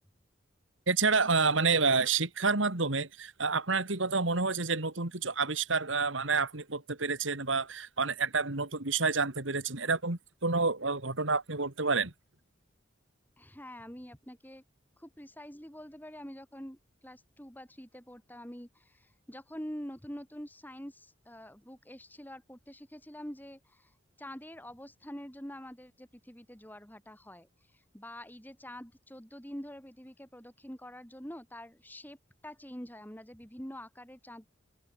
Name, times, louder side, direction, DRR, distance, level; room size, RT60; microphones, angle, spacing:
voice 1, 0.9-12.1, right 4 dB, 80° right, 2.5 m, -29 dB
voice 2, 13.4-14.6 15.0-23.9 24.2-27.5 27.9-32.2 32.4-34.5, equal, 10° left, 5.5 m, -46 dB
open air
head